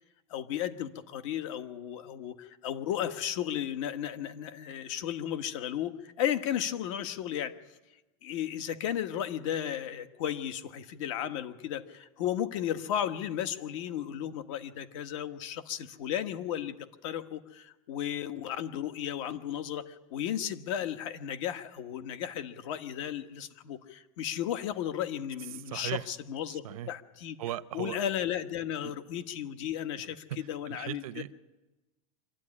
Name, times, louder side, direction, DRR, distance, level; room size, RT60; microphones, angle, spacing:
voice 1, 0.3-7.6 8.2-16.7 17.0-27.4 27.7-31.2, left 10 dB, 65° left, 1.5 m, -34 dB
voice 2, 25.7-26.0 26.5-26.9 27.4-28.0 30.3-31.3, right 13 dB, 90° right, 0.8 m, -37 dB
24.5 x 13.0 x 9.9 m
supercardioid pair, 155°, 18 cm